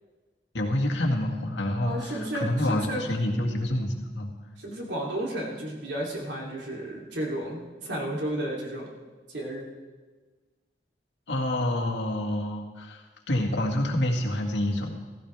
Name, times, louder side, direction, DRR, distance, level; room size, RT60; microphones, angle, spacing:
voice 1, 0.5-4.3 11.3-14.9, left 1 dB, 90° left, 0 dB, 1.9 m, -27 dB
voice 2, 1.8-3.0 4.6-8.9 9.3-9.7, right 1 dB, 80° right, -2 dB, 3.0 m, -32 dB
15.5 x 15.0 x 3.4 m, 1.4 s
head